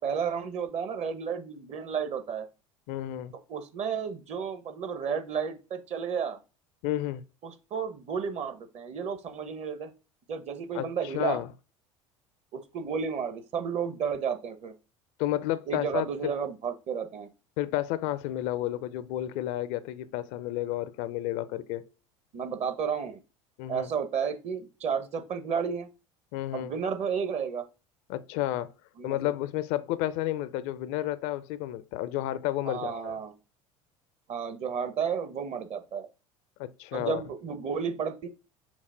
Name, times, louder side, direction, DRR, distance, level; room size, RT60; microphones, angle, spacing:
voice 1, 0.0-2.5 3.5-6.4 7.4-9.9 10.3-11.4 12.5-14.7 15.7-17.3 22.3-23.2 23.7-25.9 26.5-27.6 29.0-29.3 32.6-33.3 34.3-36.1 36.9-38.3, right 6 dB, 40° right, 1.0 m, -32 dB
voice 2, 2.9-3.3 6.8-7.2 10.7-11.5 15.2-16.3 17.6-21.9 23.6-23.9 26.3-26.7 28.1-28.7 29.0-33.2 36.6-37.2, left 14 dB, 60° left, 0.5 m, -31 dB
5.9 x 2.1 x 4.3 m
hypercardioid pair, 70°, 16 cm